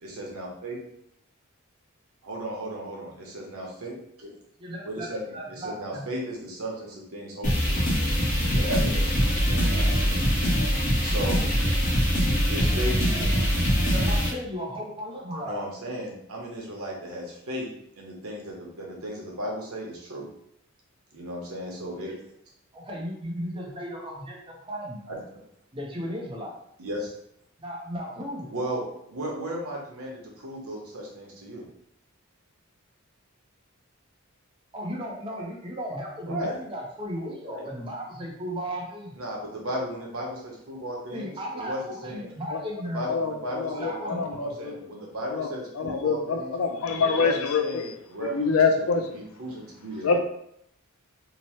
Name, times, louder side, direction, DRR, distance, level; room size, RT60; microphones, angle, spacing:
voice 1, 0.0-0.8 2.2-4.3 4.8-5.2 5.5-7.8 8.5-10.3 11.0-11.5 12.5-13.2 15.4-17.7 18.0-20.3 21.1-22.2 25.1-25.2 26.8-27.1 28.5-28.8 29.1-31.6 36.3-36.5 37.4-37.7 39.2-42.3 42.8-46.6 46.9-50.2, right 1 dB, 85° right, -2 dB, 0.8 m, -35 dB
voice 2, 4.6-6.0 13.1-13.2 13.9-15.6 22.7-25.1 25.7-26.5 27.6-28.5 34.7-39.1 41.1-43.0 43.7-44.3, equal, 25° right, -2 dB, 0.6 m, -35 dB
sound 1, 7.4-14.3, equal, 35° left, 0.8 m, -23 dB
voice 3, 43.1-44.7 45.3-45.5 45.8-47.9 48.2-49.2 50.0-50.2, left 5 dB, 80° left, 4 dB, 0.4 m, -25 dB
2.8 x 2.0 x 2.9 m, 0.72 s
head